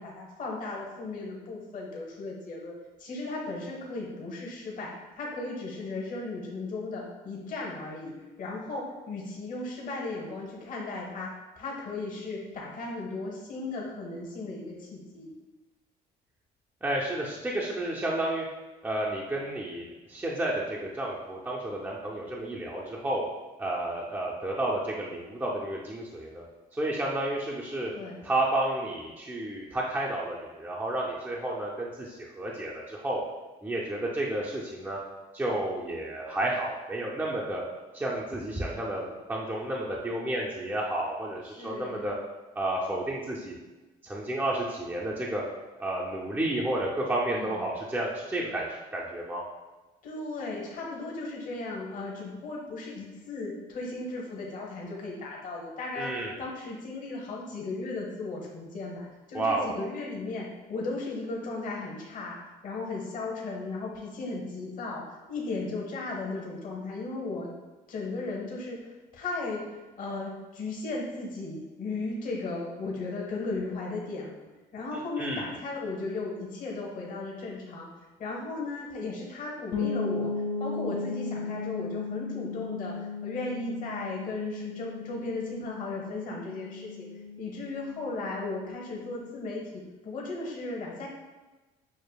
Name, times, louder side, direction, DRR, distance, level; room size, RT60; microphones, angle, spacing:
voice 1, 0.0-2.7 3.0-4.9 5.1-8.1 8.4-15.3 27.9-28.2 41.6-42.1 47.3-47.6 50.0-62.4 62.6-67.5 67.9-74.4 74.7-77.9 78.2-80.3 80.6-87.1 87.4-89.6 90.0-91.1, left 3 dB, 50° left, -3 dB, 1.0 m, -36 dB
voice 2, 16.8-18.5 18.8-23.2 23.6-26.4 26.7-27.9 28.2-33.2 33.6-35.0 35.3-37.6 37.9-42.1 42.6-43.6 44.0-45.4 45.8-49.4 56.0-56.4 59.3-59.7 75.2-75.5, right 1 dB, 10° right, -4 dB, 0.5 m, -31 dB
sound 1, 79.7-89.4, left 4 dB, 70° left, 0.6 m, -36 dB
6.5 x 2.5 x 2.3 m, 1.2 s
cardioid pair, 110°, 17 cm